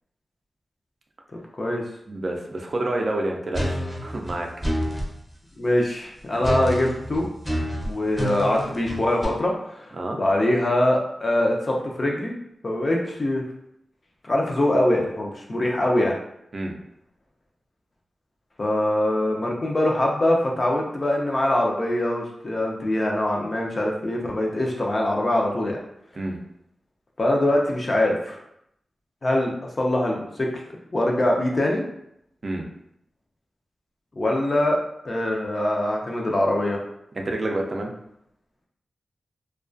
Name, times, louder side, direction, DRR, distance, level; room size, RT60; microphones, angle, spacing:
voice 1, 2.1-4.5 4.7-4.8 6.3-6.4 9.9-10.2 16.5-16.7 26.2-26.4 32.4-32.7 37.1-37.9, right 2 dB, 45° right, 1 dB, 0.4 m, -28 dB
sound 1, 3.5-5.1 6.4-9.2, equal, ahead, 0.6 m, -28 dB
voice 2, 5.6-7.3 7.8-12.3 12.6-13.5 14.2-16.1 18.6-25.8 27.2-28.4 29.2-30.5 30.9-31.8 34.2-34.8 35.0-36.8, left 1 dB, 40° left, -1 dB, 0.4 m, -23 dB
2.3 x 2.2 x 2.5 m, 0.77 s
wide cardioid pair, 85°, 0 cm